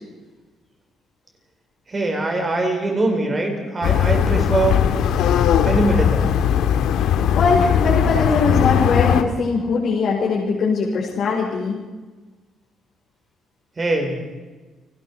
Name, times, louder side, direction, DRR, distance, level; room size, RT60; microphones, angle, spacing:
voice 1, 1.9-4.9 5.6-6.3 13.8-14.2, right 2 dB, 25° right, 3 dB, 4.6 m, -22 dB
sound 1, 3.8-9.2, left 9 dB, 90° left, 1.7 m, -18 dB
voice 2, 7.3-11.8, left 4 dB, 50° left, -4 dB, 4.7 m, -21 dB
30.0 x 19.5 x 4.8 m, 1.3 s
cardioid pair, 160°, 0 cm